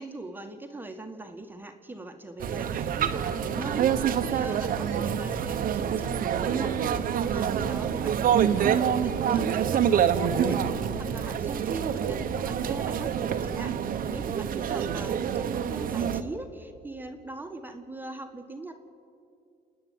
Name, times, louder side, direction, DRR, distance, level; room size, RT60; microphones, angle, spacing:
voice 1, 0.0-18.8, right 2 dB, 10° right, 4 dB, 1.5 m, -40 dB
sound 1, 2.4-16.2, right 8 dB, 55° right, 1.1 m, -27 dB
29.5 x 10.0 x 9.4 m, 2.5 s
cardioid pair, 110°, 17 cm